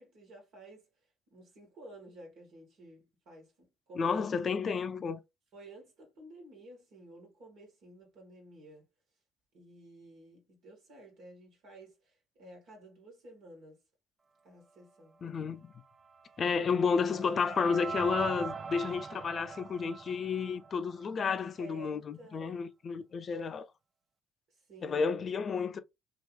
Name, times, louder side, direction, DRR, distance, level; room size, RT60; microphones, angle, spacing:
voice 1, 0.0-4.2 5.5-8.9 9.5-13.8 14.4-15.2 21.6-22.6 24.5-25.0, right 1 dB, 60° right, 1.5 m, -53 dB
voice 2, 4.0-5.2 15.2-15.7 16.4-23.7 24.8-25.8, left 5 dB, 40° left, 0.5 m, -31 dB
sound 1, 16.1-21.2, right 5 dB, 35° right, 0.3 m, -41 dB
3.1 x 2.6 x 3.0 m
hypercardioid pair, 55°, 0 cm